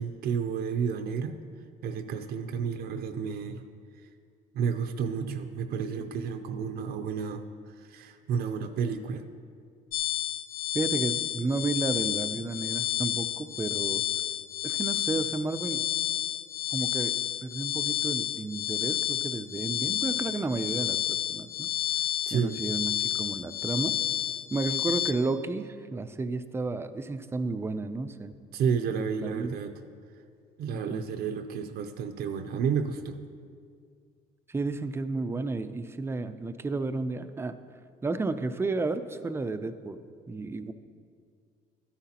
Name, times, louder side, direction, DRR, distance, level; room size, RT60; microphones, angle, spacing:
voice 1, 0.0-1.3 1.8-3.6 4.5-7.4 7.8-9.2 22.3-22.6 28.5-29.7 30.6-33.2, right 6 dB, 70° right, 6 dB, 0.5 m, -31 dB
sound 1, 9.9-25.1, left 11 dB, 60° left, 0.4 m, -30 dB
voice 2, 10.7-14.0 14.6-15.8 16.7-21.7 22.3-23.9 24.5-28.3 28.9-29.5 30.7-31.0 34.5-37.5 38.0-40.0 40.3-40.7, right 3 dB, 15° right, 10 dB, 0.4 m, -32 dB
12.5 x 9.8 x 2.9 m, 2.2 s
cardioid pair, 110°, 17 cm